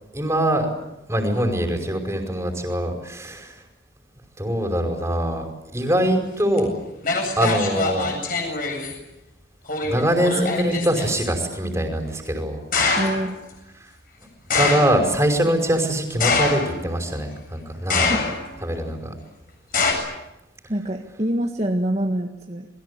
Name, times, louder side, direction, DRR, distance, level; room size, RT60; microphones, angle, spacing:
voice 1, 0.1-0.7 1.1-3.6 4.4-5.4 5.7-6.7 7.4-8.1 9.8-12.6 14.5-18.2 18.6-19.1, right 1 dB, 15° right, 4 dB, 5.2 m, -23 dB
sound 1, 6.6-6.7 7.0-9.0 9.7-11.3 12.7-13.3 14.5-15.1 16.2-16.9 17.9-18.6 19.7-19.9, left 4 dB, 50° left, 7.8 m, -23 dB
voice 2, 13.0-13.4 18.1-18.3 20.7-22.7, right 1 dB, 35° right, 2 dB, 1.8 m, -25 dB
29.0 x 22.0 x 8.4 m, 0.93 s
head